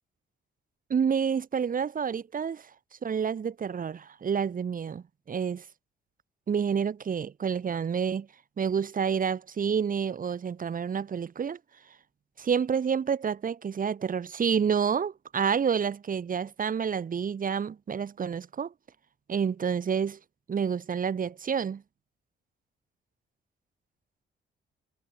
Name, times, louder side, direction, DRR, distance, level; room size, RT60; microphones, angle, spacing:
voice 1, 0.9-2.7 3.0-5.6 6.5-8.3 8.6-11.6 12.4-18.7 19.3-20.2 20.5-21.8, right 7 dB, 45° right, 2.2 m, -29 dB
cardioid pair, 90°, 20 cm